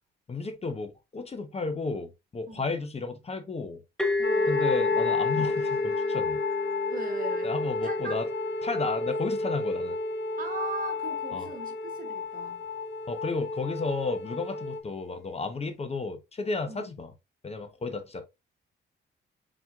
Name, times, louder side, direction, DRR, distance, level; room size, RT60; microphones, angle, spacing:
voice 1, 0.3-3.8 4.5-6.4 7.4-8.3 8.6-10.0 11.3-11.5 13.1-17.1 17.4-18.3, left 3 dB, 30° left, 0.8 m, -32 dB
sound 1, 4.0-11.5, left 3 dB, 5° left, 0.8 m, -32 dB
sound 2, 4.2-14.8, left 3 dB, 65° left, 0.7 m, -32 dB
voice 2, 4.2-4.5 6.9-7.6 7.8-8.2 10.4-12.6 16.7-16.9, right 5 dB, 45° right, 1.6 m, -39 dB
4.4 x 4.1 x 2.3 m
cardioid pair, 90°, 20 cm